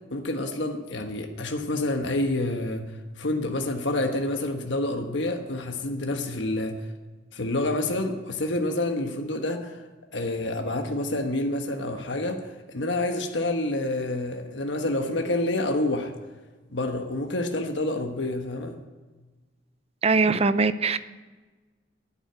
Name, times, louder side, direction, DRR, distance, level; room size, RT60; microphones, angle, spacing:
voice 1, 0.1-2.9 3.2-6.8 7.3-9.8 10.1-16.1 16.7-18.7, left 2 dB, 75° left, 4 dB, 1.3 m, -28 dB
voice 2, 20.0-21.0, right 4 dB, 35° right, 13 dB, 0.6 m, -21 dB
11.5 x 10.0 x 9.1 m, 1.3 s
head